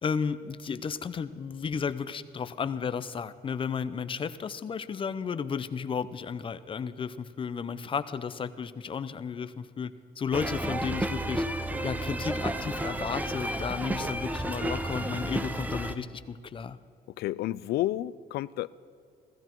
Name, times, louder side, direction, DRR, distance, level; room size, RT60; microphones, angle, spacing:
voice 1, 0.0-11.4 11.8-16.8, left 6 dB, 30° left, 13 dB, 0.6 m, -33 dB
sound 1, 10.3-15.9, right 1 dB, 10° right, 0.8 m, -32 dB
voice 2, 17.2-18.7, left 15 dB, 70° left, 19 dB, 0.4 m, -30 dB
16.0 x 15.0 x 4.6 m, 2.4 s
cardioid pair, 110°, 17 cm